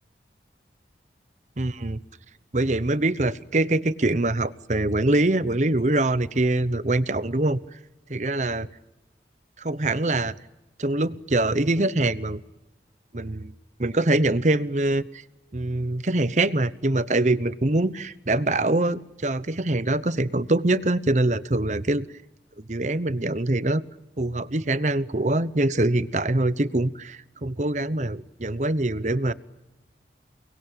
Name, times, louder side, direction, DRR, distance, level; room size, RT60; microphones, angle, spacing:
voice 1, 1.6-2.0 2.5-7.6 8.1-8.7 9.6-10.3 10.8-12.4 13.1-13.5 13.8-15.0 15.5-22.1 22.7-23.8 24.2-29.3, right 2 dB, 40° right, 15 dB, 0.9 m, -24 dB
29.5 x 20.5 x 9.0 m, 1.0 s
head